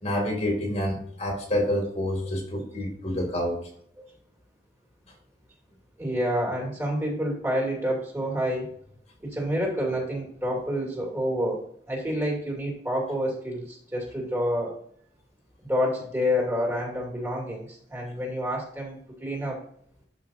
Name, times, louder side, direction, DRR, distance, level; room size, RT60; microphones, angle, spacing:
voice 1, 0.0-3.6, left 1 dB, 40° left, 2 dB, 2.1 m, -28 dB
voice 2, 6.0-8.7 9.2-14.8 15.6-19.6, equal, 15° right, -2 dB, 2.5 m, -28 dB
11.5 x 5.2 x 2.6 m, 0.65 s
head